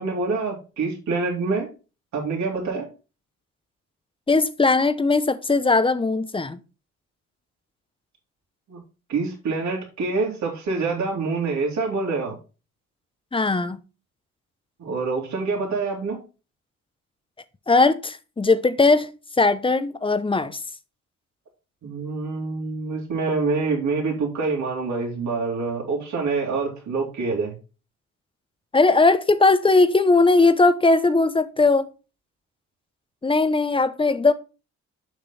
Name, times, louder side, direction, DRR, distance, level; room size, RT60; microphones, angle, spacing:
voice 1, 0.0-1.7 2.1-2.9 8.7-8.8 9.1-12.4 14.8-16.2 21.8-27.6, right 4 dB, 65° right, 2.7 m, -26 dB
voice 2, 4.3-6.6 13.3-13.8 17.7-19.1 19.4-20.6 28.7-31.9 33.2-34.3, left 3 dB, 15° left, 0.8 m, -19 dB
7.0 x 6.0 x 4.1 m
cardioid pair, 90°, 30 cm